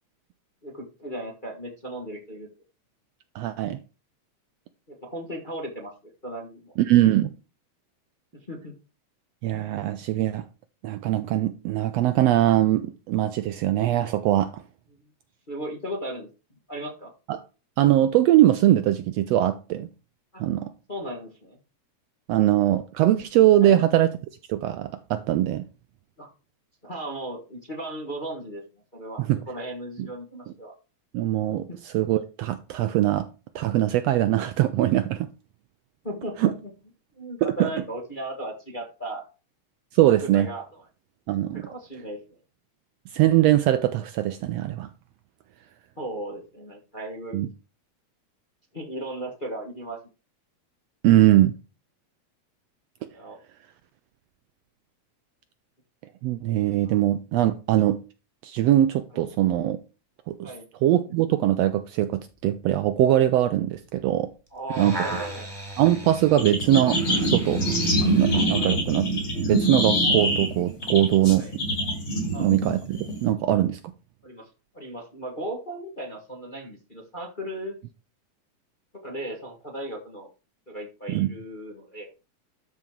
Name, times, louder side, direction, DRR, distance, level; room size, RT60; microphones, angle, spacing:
voice 1, 0.6-2.5 4.9-5.9 6.2-6.7 8.5-8.7 15.5-16.3 16.7-17.1 20.3-20.4 20.9-21.6 23.6-23.8 26.2-26.3 26.8-28.6 28.9-30.7 31.7-31.8 36.0-36.5 37.1-39.2 40.1-40.8 41.5-42.2 46.0-47.4 48.7-50.0 53.1-53.4 56.8-57.0 59.1-59.3 60.4-60.6 64.5-65.5 68.6-68.8 71.4-71.5 72.3-72.5 74.2-74.5 74.7-77.8 79.0-80.3 80.7-82.1, right 1 dB, 25° left, 1.1 m, -36 dB
voice 2, 3.3-3.8 6.8-7.3 9.4-10.4 10.8-14.6 17.3-17.4 17.8-19.9 20.4-20.7 22.3-24.1 24.5-25.6 29.3-29.4 30.0-30.1 31.1-33.3 33.5-35.3 36.4-36.5 37.4-37.7 39.9-40.5 41.3-41.7 43.1-44.9 47.3-47.5 51.0-51.5 56.2-58.0 58.4-59.8 60.3-60.5 60.8-64.3 64.8-65.0 65.8-67.6 68.0-69.1 69.4-71.5 72.4-73.9 81.1-81.3, right 13 dB, 75° right, 1.5 m, -22 dB
sound 1, 64.5-68.5 69.2-69.3, right 1 dB, 10° right, 2.0 m, -36 dB
sound 2, 66.4-73.3, right 1 dB, 45° left, 5.4 m, -24 dB
12.0 x 4.9 x 4.5 m
omnidirectional pair, 3.3 m